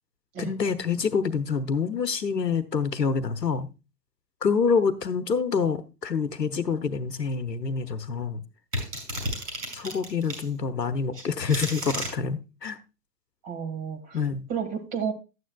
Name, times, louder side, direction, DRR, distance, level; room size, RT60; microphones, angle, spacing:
voice 1, 0.4-3.7 4.4-8.4 9.7-12.8 14.1-14.4, left 5 dB, 85° left, 0.9 m, -27 dB
sound 1, 8.7-10.5 11.1-12.1, equal, 80° right, 5.7 m, -32 dB
voice 2, 13.4-14.2 14.5-15.1, right 7 dB, 35° right, 1.8 m, -31 dB
12.0 x 9.5 x 2.2 m
figure-of-eight pair, 105°, 48 cm